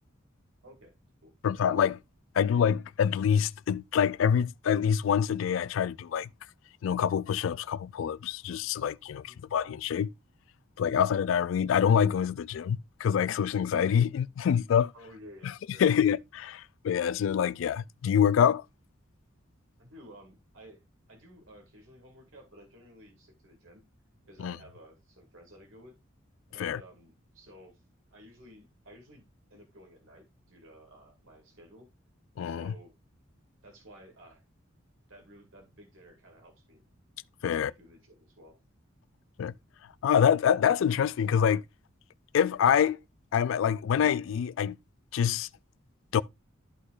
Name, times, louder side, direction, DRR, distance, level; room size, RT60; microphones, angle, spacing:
voice 1, 0.6-0.9 1.2-1.3 9.2-9.4 14.9-16.0 19.8-20.8 21.1-23.8 24.3-26.0 26.5-27.8 28.1-31.9 32.5-33.0 33.6-34.4 35.1-36.8 37.4-38.6, equal, 75° right, 2.1 m, -53 dB
voice 2, 1.4-2.0 2.4-6.3 6.8-10.1 10.8-14.9 15.8-18.6 24.4-24.6 26.6-26.8 32.4-32.7 37.4-37.7 39.4-39.5 40.0-41.6 42.3-43.0 43.3-44.8 45.1-45.5 46.1-46.2, left 8 dB, 70° left, 0.3 m, -26 dB
13.0 x 4.3 x 2.4 m
head